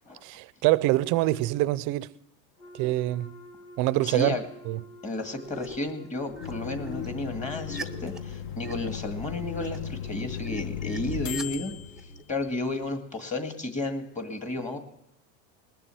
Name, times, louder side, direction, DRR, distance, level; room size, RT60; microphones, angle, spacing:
voice 1, 0.2-2.1 2.7-3.3 3.8-4.4 4.7-4.8, right 17 dB, 50° right, 0.6 m, -25 dB
Wind instrument woodwind instrument, 2.6-8.4, equal, 85° left, 3.5 m, -49 dB
voice 2, 4.0-4.4 5.0-11.7 12.3-14.8, left 2 dB, 15° left, 2.0 m, -32 dB
sound 1, 5.2-5.9 6.3-12.2, left 2 dB, ahead, 0.9 m, -42 dB
sound 2, 6.4-12.8, left 9 dB, 45° left, 1.1 m, -36 dB
20.0 x 6.9 x 7.7 m
supercardioid pair, 125°, 41 cm